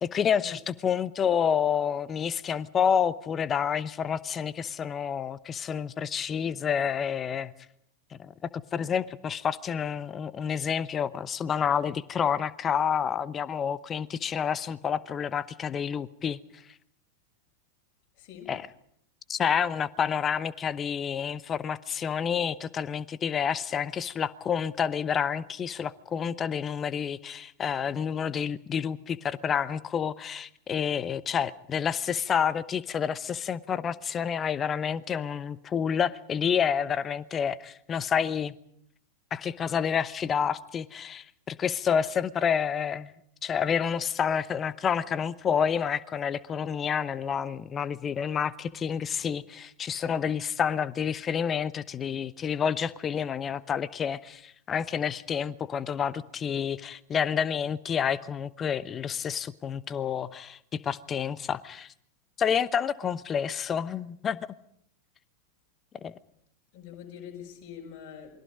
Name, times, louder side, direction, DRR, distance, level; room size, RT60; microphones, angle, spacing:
voice 1, 0.0-7.5 8.1-16.4 18.5-18.7 19.3-38.5 39.3-43.1 43.4-61.9 62.4-64.5 66.0-66.1, left 7 dB, 25° left, 19 dB, 0.9 m, -29 dB
voice 2, 18.2-18.5 66.7-68.3, left 9 dB, 40° left, 1 dB, 6.6 m, -44 dB
28.0 x 22.0 x 5.2 m, 0.68 s
figure-of-eight pair, 90°, 0 cm